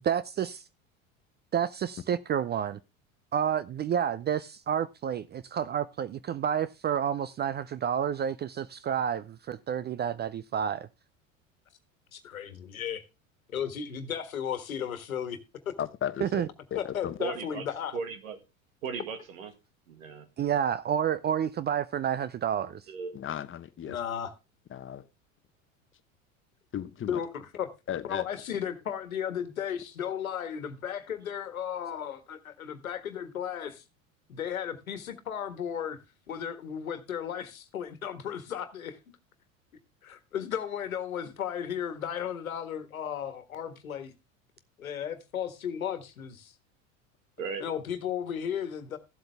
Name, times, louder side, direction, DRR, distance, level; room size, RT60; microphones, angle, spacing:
voice 1, 0.1-0.6 1.5-2.8 3.3-10.9 16.2-16.5 20.4-22.8, right 9 dB, 25° right, 0.5 m, -29 dB
voice 2, 12.1-13.0 13.5-15.4 16.7-18.0 23.9-24.3 27.1-27.7 28.0-33.8 34.3-36.0 36.3-39.0 40.0-44.1 44.8-46.5 47.6-49.0, left 8 dB, 85° left, 1.5 m, -35 dB
voice 3, 15.8-17.2 23.1-24.0 24.7-25.1 26.7-27.2 27.9-28.3 47.6-47.7, left 10 dB, 30° left, 1.1 m, -36 dB
voice 4, 17.2-17.6 17.9-18.4 18.8-19.5 19.9-20.3 22.9-23.1 47.4-47.6, right 5 dB, 75° right, 2.1 m, -36 dB
14.5 x 7.8 x 3.4 m
hypercardioid pair, 80°, 41 cm